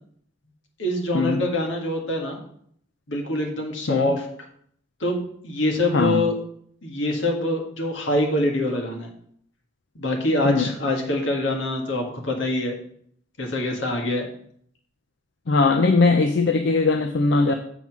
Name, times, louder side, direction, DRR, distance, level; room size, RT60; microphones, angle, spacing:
voice 1, 0.8-2.4 3.1-4.3 5.0-5.2 5.4-6.4 6.8-9.1 9.9-12.8 13.4-14.3, left 1 dB, 85° left, 1 dB, 1.7 m, -24 dB
voice 2, 5.9-6.2 10.4-10.7 15.5-17.5, left 3 dB, 70° left, 7 dB, 0.5 m, -20 dB
7.3 x 4.0 x 6.0 m, 0.64 s
head